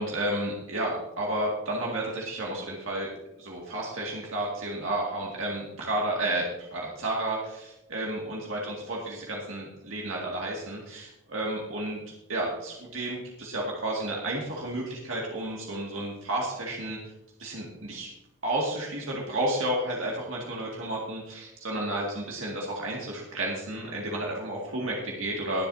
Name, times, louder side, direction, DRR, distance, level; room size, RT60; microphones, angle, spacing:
voice 1, 0.0-3.1 3.4-6.4 6.7-12.0 12.3-17.0 17.4-18.1 18.4-25.7, right 1 dB, 70° right, -3 dB, 2.2 m, -31 dB
21.0 x 8.0 x 2.8 m, 0.91 s
head